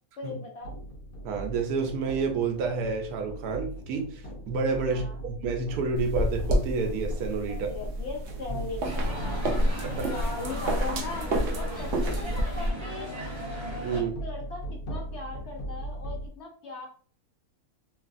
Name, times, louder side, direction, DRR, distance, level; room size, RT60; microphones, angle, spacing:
voice 1, 0.2-0.7 4.9-5.2 7.5-13.1 13.9-14.6 14.9-16.9, left 3 dB, 60° left, 0 dB, 0.8 m, -39 dB
sound 1, 0.6-16.3, right 1 dB, 75° left, 1.2 m, -40 dB
voice 2, 1.2-7.7 8.5-8.6 9.8-10.1 13.8-14.1, right 4 dB, 80° right, 4 dB, 1.1 m, -29 dB
sound 2, 6.0-12.7, equal, 65° right, 0.7 m, -29 dB
sound 3, 8.8-14.0, right 1 dB, 35° right, 0.4 m, -38 dB
3.1 x 2.4 x 2.5 m, 0.41 s
omnidirectional pair, 1.6 m